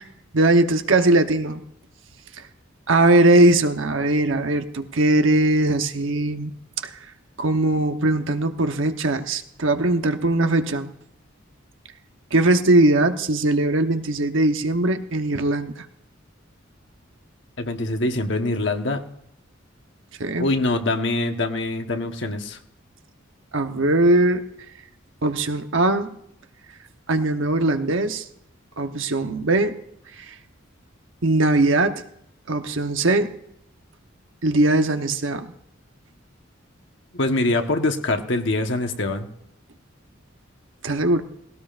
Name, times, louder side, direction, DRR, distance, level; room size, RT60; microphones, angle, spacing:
voice 1, 0.3-1.6 2.9-6.5 7.4-10.9 12.3-15.8 20.2-20.5 23.5-24.4 25.2-26.2 27.1-28.2 28.8-29.8 31.2-32.0 32.5-33.4 34.4-35.5 40.8-41.2, right 2 dB, 75° right, 7 dB, 1.0 m, -20 dB
voice 2, 17.6-19.0 20.4-22.6 37.1-39.3, left 2 dB, 60° left, 5 dB, 1.3 m, -24 dB
19.0 x 17.0 x 2.5 m, 0.74 s
head